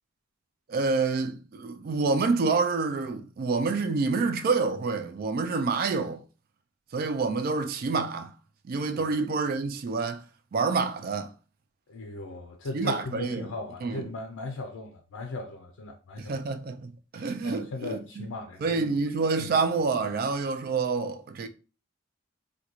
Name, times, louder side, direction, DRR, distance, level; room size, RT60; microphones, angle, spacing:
voice 1, 0.7-6.2 6.9-8.3 8.6-10.2 10.5-11.3 12.7-13.5 13.8-14.1 16.2-18.3 18.6-21.5, right 4 dB, 45° right, 0.3 m, -28 dB
voice 2, 11.9-16.3 17.4-18.9 19.4-19.5, left 2 dB, 85° left, 0.4 m, -38 dB
3.6 x 2.2 x 2.9 m
head